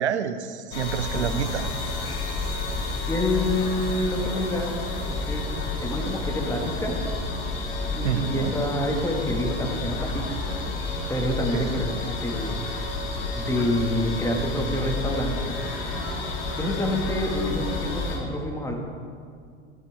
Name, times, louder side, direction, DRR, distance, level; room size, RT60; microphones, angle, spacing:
voice 1, 0.0-1.7 8.0-8.5 11.4-11.9, right 8 dB, 70° right, 12 dB, 0.8 m, -28 dB
sound 1, 0.7-18.2, left 3 dB, 55° left, 3.2 m, -30 dB
voice 2, 3.1-4.7 5.1-5.5 5.8-7.0 7.9-10.4 11.1-12.7 13.3-15.6 16.6-18.7, left 1 dB, 10° left, 1 dB, 2.2 m, -27 dB
15.5 x 12.0 x 3.8 m, 2.2 s
figure-of-eight pair, 80°, 35 cm